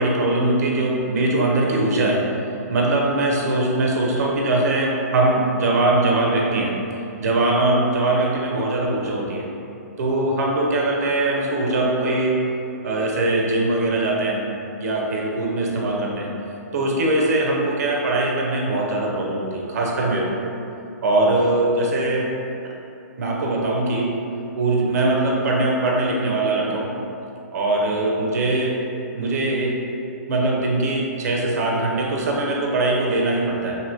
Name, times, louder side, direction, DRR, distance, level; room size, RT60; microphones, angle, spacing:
voice 1, 0.0-2.3 2.7-6.8 7.2-9.5 10.0-12.4 12.8-14.4 14.8-16.3 16.7-20.5 21.0-22.3 23.2-24.1 24.6-26.9 27.5-28.8 29.1-29.8 30.3-33.8, right 2 dB, 65° right, -1 dB, 0.6 m, -21 dB
3.0 x 2.7 x 2.6 m, 2.7 s
hypercardioid pair, 140°, 9 cm